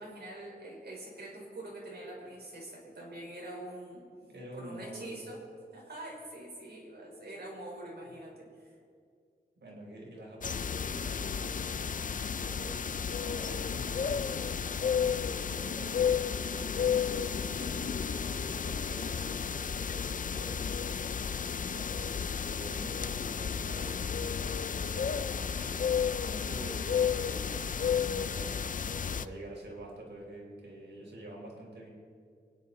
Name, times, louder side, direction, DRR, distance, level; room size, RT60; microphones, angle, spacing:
voice 1, 0.0-4.0 4.5-5.4 5.7-8.5, right 1 dB, 70° right, -3 dB, 4.7 m, -44 dB
voice 2, 4.3-5.2 8.0-8.1 9.6-12.8 13.2-17.1 17.5-20.6 21.2-28.6 29.0-31.9, right 1 dB, 85° right, -2 dB, 4.3 m, -47 dB
sound 1, 10.4-29.2, left 7 dB, 50° left, 0.4 m, -32 dB
25.0 x 10.5 x 4.2 m, 2.2 s
wide cardioid pair, 125°, 18 cm